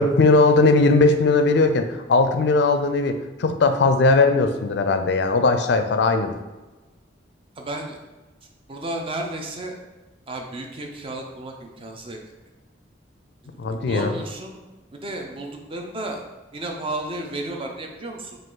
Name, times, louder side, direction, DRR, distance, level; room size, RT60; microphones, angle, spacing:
voice 1, 0.0-6.4 13.6-14.1, left 3 dB, 65° left, 8 dB, 0.4 m, -19 dB
voice 2, 7.6-8.0 8.7-9.8 10.3-12.2 13.6-14.6 14.9-16.2 16.5-18.4, right 2 dB, 30° right, 2 dB, 0.6 m, -32 dB
5.1 x 2.5 x 3.8 m, 1.2 s
head